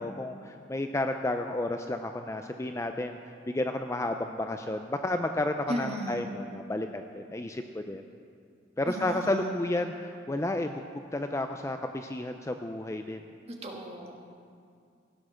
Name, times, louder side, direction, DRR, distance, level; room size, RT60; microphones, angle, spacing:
voice 1, 0.0-3.2 3.5-8.0 8.8-10.8 11.1-13.2, left 1 dB, 15° left, 6 dB, 0.4 m, -31 dB
voice 2, 5.7-6.2 8.9-9.5 13.6-14.1, equal, 30° right, 0 dB, 1.5 m, -35 dB
16.0 x 8.6 x 6.3 m, 2.3 s
head